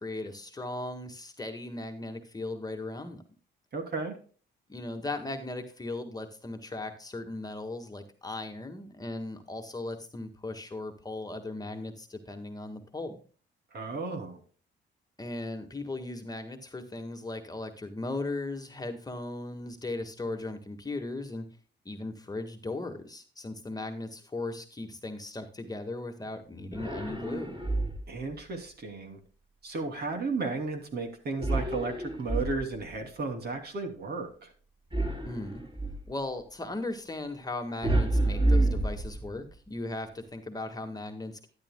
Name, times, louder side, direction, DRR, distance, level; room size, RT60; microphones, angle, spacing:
voice 1, 0.0-3.2 4.7-13.2 15.2-21.5 21.8-27.6 35.2-35.6 36.1-41.5, left 2 dB, 20° left, 5 dB, 1.6 m, -37 dB
voice 2, 3.7-4.2 13.7-14.4 28.1-29.2 29.6-34.5, right 3 dB, 55° right, 4 dB, 2.8 m, -34 dB
sound 1, 26.7-28.2 31.4-33.0 34.9-36.1 37.8-39.5, right 2 dB, 25° right, 3.9 m, -29 dB
12.5 x 10.5 x 2.2 m, 0.39 s
cardioid pair, 90°, 20 cm